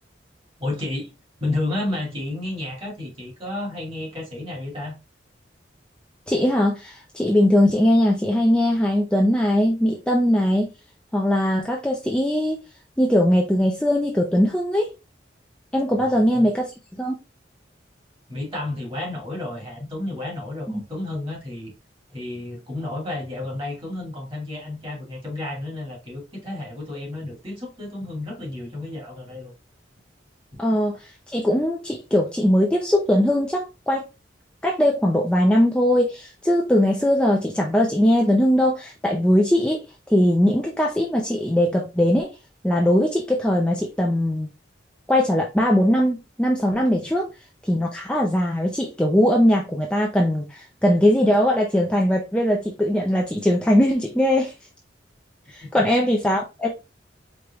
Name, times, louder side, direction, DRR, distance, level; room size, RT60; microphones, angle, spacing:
voice 1, 0.6-1.1 1.4-4.9 16.0-16.5 18.3-21.7 22.1-29.5 55.7-56.1, left 2 dB, 30° right, 2.4 m, -31 dB
voice 2, 6.3-10.7 11.1-12.6 13.0-14.9 15.7-16.7 17.0-17.2 20.7-20.8 30.6-31.0 31.3-34.0 34.6-39.8 40.1-42.3 42.6-44.5 45.1-47.3 47.6-54.5 55.5-56.7, left 1 dB, 5° left, 0.6 m, -20 dB
4.8 x 3.3 x 2.9 m
head